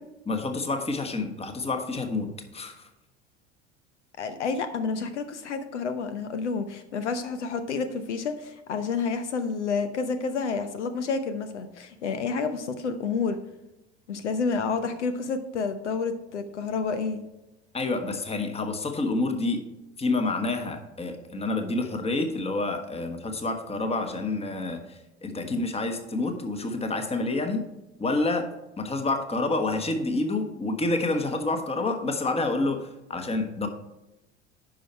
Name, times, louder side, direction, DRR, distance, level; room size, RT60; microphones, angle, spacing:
voice 1, 0.3-2.9 17.7-19.7 20.0-27.6 28.0-33.7, left 2 dB, 15° left, 6 dB, 1.3 m, -28 dB
voice 2, 4.2-13.4 14.1-17.2 25.5-25.6, left 5 dB, 75° left, 10 dB, 0.8 m, -29 dB
10.0 x 5.6 x 4.5 m, 0.97 s
figure-of-eight pair, 70°, 35 cm